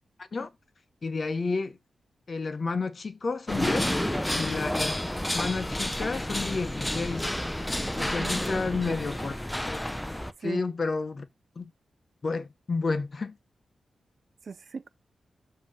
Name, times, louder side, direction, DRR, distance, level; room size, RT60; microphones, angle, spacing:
voice 1, 1.0-1.8 2.3-4.0 4.3-5.0 5.3-7.3 8.0-9.4 9.7-9.8 10.4-11.3 11.6-11.7 12.2-13.4, left 4 dB, 40° left, 0.8 m, -31 dB
sound 1, 3.5-10.3, left 1 dB, 5° left, 0.5 m, -30 dB
voice 2, 8.0-9.0 10.4-10.6 14.5-14.9, right 5 dB, 50° right, 0.4 m, -39 dB
7.2 x 2.9 x 5.3 m
wide cardioid pair, 110°, 0 cm